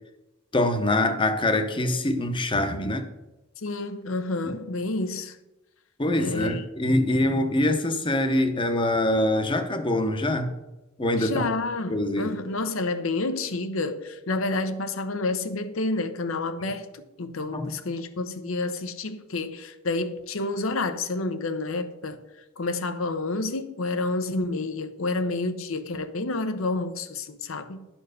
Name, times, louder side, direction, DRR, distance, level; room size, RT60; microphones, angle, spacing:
voice 1, 0.5-3.1 4.5-4.6 6.0-10.5 11.0-11.5 11.9-12.3 17.5-17.7, left 1 dB, 25° left, 0.8 m, -24 dB
voice 2, 3.6-5.4 6.2-6.6 11.2-22.2 22.6-27.9, left 2 dB, 70° left, 0.8 m, -29 dB
11.0 x 4.4 x 6.6 m
head